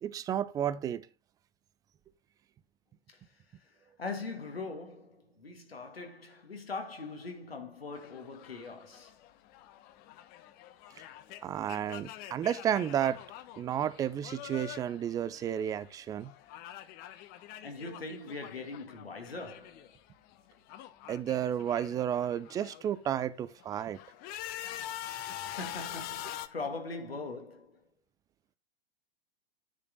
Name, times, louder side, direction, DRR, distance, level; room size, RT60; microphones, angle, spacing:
voice 1, 0.0-1.1 11.4-13.2 13.6-16.3 21.1-24.0, right 10 dB, 10° right, 0.3 m, -32 dB
voice 2, 3.6-9.2 17.6-19.9 25.4-27.8, left 3 dB, 80° left, 2.4 m, -41 dB
sound 1, 7.9-20.0 20.3-22.9 23.4-26.5, left 12 dB, 30° left, 0.8 m, -45 dB
10.0 x 5.0 x 5.2 m
figure-of-eight pair, 100°, 30 cm